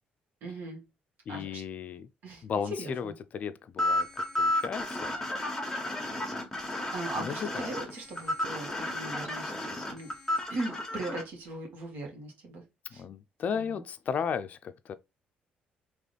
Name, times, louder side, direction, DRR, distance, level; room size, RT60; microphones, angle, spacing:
voice 1, 0.4-0.8 1.3-1.6 2.2-2.4 2.8-3.1 6.9-10.1 10.5-12.6 12.9-13.0 13.5-13.8, right 2 dB, 70° right, 1.6 m, -39 dB
voice 2, 1.3-2.1 2.4-5.1 7.2-7.7 13.0-14.9, left 7 dB, 50° left, 0.4 m, -35 dB
sound 1, 3.8-11.2, left 1 dB, 10° left, 1.3 m, -32 dB
3.3 x 3.0 x 3.9 m
cardioid pair, 110°, 3 cm